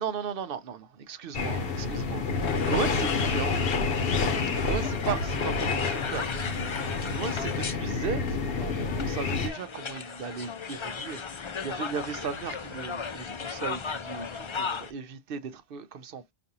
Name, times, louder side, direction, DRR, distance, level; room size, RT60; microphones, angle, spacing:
voice 1, 0.0-3.6 4.5-6.3 7.1-16.3, right 6 dB, 60° right, 0.8 m, -36 dB
sound 1, 1.3-9.5, left 4 dB, 65° left, 0.9 m, -28 dB
sound 2, 2.4-14.9, left 5 dB, 40° left, 0.4 m, -36 dB
5.0 x 2.6 x 2.7 m
omnidirectional pair, 1.1 m